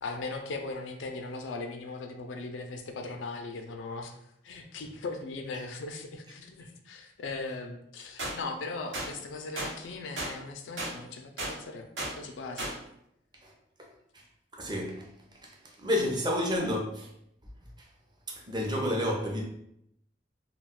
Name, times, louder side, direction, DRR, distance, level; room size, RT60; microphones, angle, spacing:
voice 1, 0.0-11.9 12.2-12.7, left 3 dB, 85° left, 5 dB, 0.4 m, -39 dB
sound 1, 8.2-8.3 8.9-9.1 9.6-9.7 10.2-10.3 10.8-10.9 11.4-11.5 12.0-12.1 12.6-12.7, right 1 dB, 80° right, 0.9 m, -33 dB
voice 2, 14.6-15.1 15.4-15.5 15.8-16.9 18.5-19.4, left 1 dB, 25° right, 0 dB, 0.5 m, -29 dB
2.3 x 2.2 x 3.5 m, 0.76 s
head